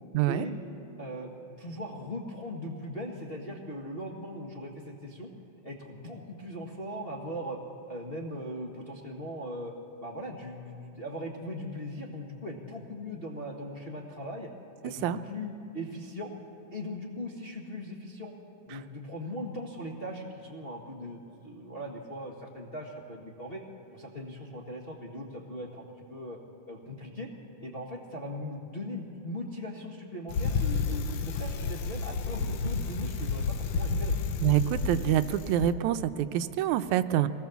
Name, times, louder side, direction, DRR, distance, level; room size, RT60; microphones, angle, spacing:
voice 1, 0.1-0.5 14.8-15.2 18.7-18.8 34.4-37.3, right 12 dB, 80° right, 10 dB, 2.0 m, -26 dB
voice 2, 1.0-1.3 1.6-5.3 5.6-7.6 7.9-9.7 10.0-14.5 14.8-16.3 16.7-18.3 18.7-23.6 23.9-26.4 26.7-27.3 27.6-34.1, equal, 30° left, -2 dB, 1.1 m, -39 dB
Bicycle, 30.3-35.7, left 4 dB, 90° left, 1.0 m, -31 dB
23.5 x 19.0 x 7.1 m, 2.8 s
omnidirectional pair, 3.4 m